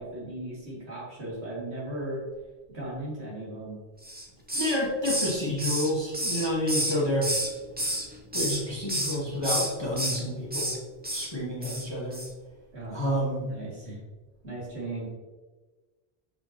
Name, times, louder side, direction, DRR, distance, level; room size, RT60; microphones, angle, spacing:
voice 1, 0.0-2.2 2.7-3.8 12.7-13.0 13.4-14.0 14.4-15.1, right 1 dB, 75° right, -6 dB, 2.5 m, -37 dB
Hiss, 4.0-4.8 5.0-7.5 7.8-8.6 8.9-9.2 9.4-10.2 10.5-10.8 11.0-11.3 11.6-11.9 12.1-12.3, right 1 dB, 10° right, 0.6 m, -30 dB
voice 2, 4.5-7.3 8.3-10.7 11.1-12.2 12.9-13.5, left 1 dB, 25° left, -6 dB, 1.4 m, -29 dB
6.9 x 5.6 x 2.9 m, 1.3 s
omnidirectional pair, 1.1 m